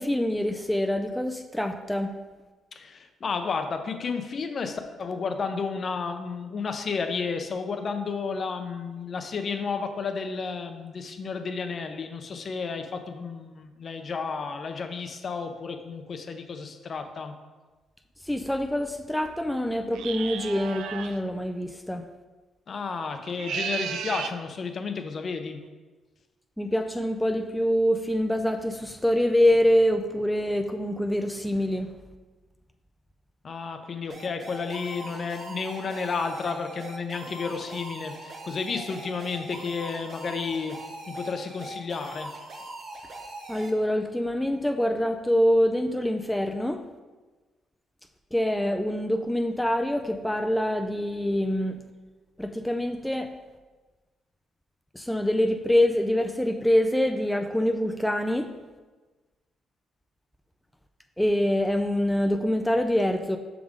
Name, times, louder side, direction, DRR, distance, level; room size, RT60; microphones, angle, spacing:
voice 1, 0.0-2.1 18.2-22.1 26.6-31.9 43.5-46.8 48.3-51.8 52.4-53.3 54.9-58.5 61.2-63.4, left 1 dB, 5° left, 5 dB, 0.4 m, -25 dB
voice 2, 2.8-17.3 22.7-25.6 33.4-40.8 41.1-42.3, left 5 dB, 45° left, 7 dB, 0.6 m, -32 dB
sound 1, 19.9-21.2 23.2-24.4, right 8 dB, 80° right, 0.3 m, -34 dB
sound 2, 34.1-43.7, right 1 dB, 40° right, 0.9 m, -41 dB
6.0 x 3.6 x 5.0 m, 1.3 s
cardioid pair, 90°, 0 cm